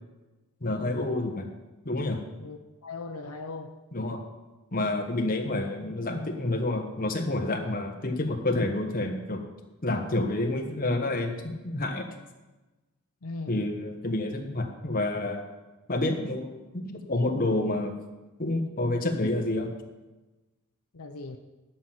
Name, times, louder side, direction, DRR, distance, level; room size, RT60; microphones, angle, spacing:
voice 1, 0.6-1.5 1.8-2.2 3.9-4.2 4.7-9.4 9.8-12.1 13.5-15.4 15.9-17.9 18.4-19.7, left 2 dB, 40° left, 3 dB, 1.4 m, -29 dB
voice 2, 2.4-3.8 13.2-13.6 20.9-21.4, left 3 dB, 75° left, 4 dB, 0.8 m, -39 dB
11.0 x 5.8 x 7.7 m, 1.1 s
head